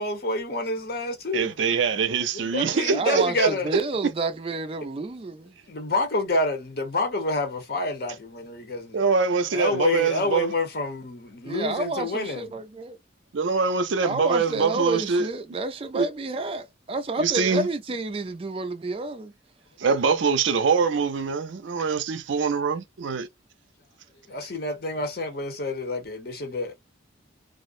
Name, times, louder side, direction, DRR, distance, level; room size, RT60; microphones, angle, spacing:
voice 1, 0.0-1.6 2.3-3.7 5.7-9.0 9.5-12.5 24.3-26.7, left 2 dB, 55° left, 0.8 m, -28 dB
voice 2, 1.3-3.5 8.9-10.5 13.3-15.3 15.9-16.1 17.2-17.7 19.8-23.3, right 5 dB, 85° right, 0.5 m, -24 dB
voice 3, 2.7-5.5 11.4-13.0 14.0-19.3, right 3 dB, 30° right, 0.3 m, -30 dB
2.4 x 2.0 x 2.5 m
head